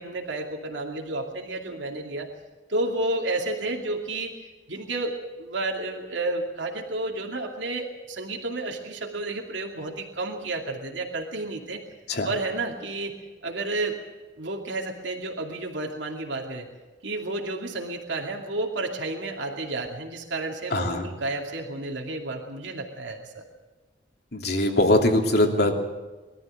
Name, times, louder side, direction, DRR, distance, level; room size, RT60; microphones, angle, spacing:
voice 1, 0.0-2.3 2.7-4.3 4.7-11.8 12.2-13.1 13.4-14.0 14.4-16.7 17.0-23.4, right 2 dB, 80° right, 1 dB, 2.6 m, -31 dB
voice 2, 20.7-21.1 24.3-25.8, left 1 dB, 60° left, 3 dB, 2.9 m, -22 dB
22.5 x 13.5 x 9.0 m, 1.2 s
head